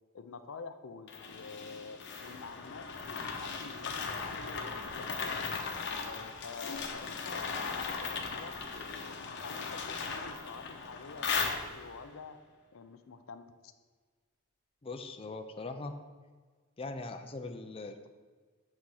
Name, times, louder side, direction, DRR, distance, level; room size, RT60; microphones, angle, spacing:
voice 1, 0.1-5.5 6.0-9.2 9.4-12.4 12.7-13.7, left 4 dB, 75° left, 9 dB, 0.5 m, -48 dB
sound 1, 1.1-12.1, left 5 dB, 60° left, 1.0 m, -38 dB
voice 2, 14.8-15.9 16.8-18.1, left 3 dB, 25° left, 5 dB, 0.5 m, -41 dB
8.3 x 4.3 x 6.4 m, 1.5 s
head